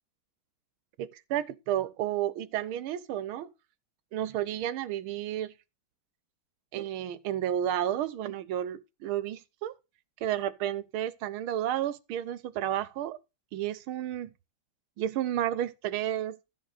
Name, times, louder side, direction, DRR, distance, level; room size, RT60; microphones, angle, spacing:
voice 1, 1.0-3.5 4.1-5.5 6.7-9.8 10.2-13.2 13.5-14.3 15.0-16.4, right 11 dB, 85° right, 1.6 m, -31 dB
13.0 x 4.5 x 6.5 m
omnidirectional pair, 2.3 m